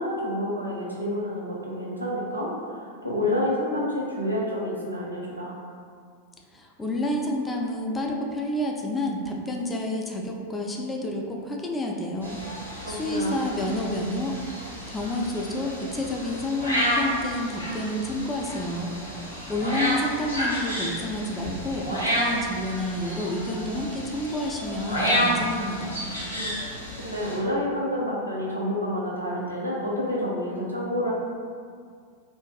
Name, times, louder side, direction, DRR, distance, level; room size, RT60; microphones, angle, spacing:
voice 1, 0.0-5.6 12.8-13.5 26.3-26.5 26.9-31.1, left 1 dB, 85° right, -4 dB, 0.5 m, -29 dB
voice 2, 6.5-18.9 19.5-26.0, left 1 dB, 15° left, 0 dB, 0.3 m, -29 dB
sound 1, 12.2-27.4, equal, 85° left, 0.6 m, -30 dB
2.5 x 2.2 x 2.3 m, 2.1 s
figure-of-eight pair, 90°, 0 cm